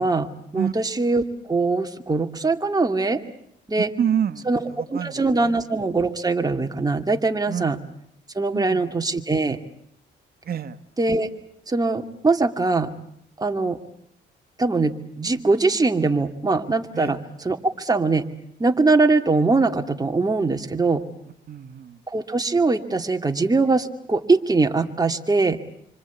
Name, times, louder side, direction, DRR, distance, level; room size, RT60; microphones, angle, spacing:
voice 1, 0.0-3.2 3.7-3.9 4.5-4.6 4.9-7.8 8.3-9.6 11.0-11.3 11.7-12.9 13.4-13.8 14.6-18.3 18.6-21.0 22.1-25.6, right 3 dB, 20° right, 5 dB, 2.4 m, -22 dB
voice 2, 4.0-5.6 7.5-7.8 8.5-8.9 10.4-10.8 16.9-17.2 21.5-22.0, right 8 dB, 50° right, 9 dB, 1.7 m, -28 dB
27.0 x 25.5 x 8.4 m, 0.73 s
cardioid pair, 90°, 20 cm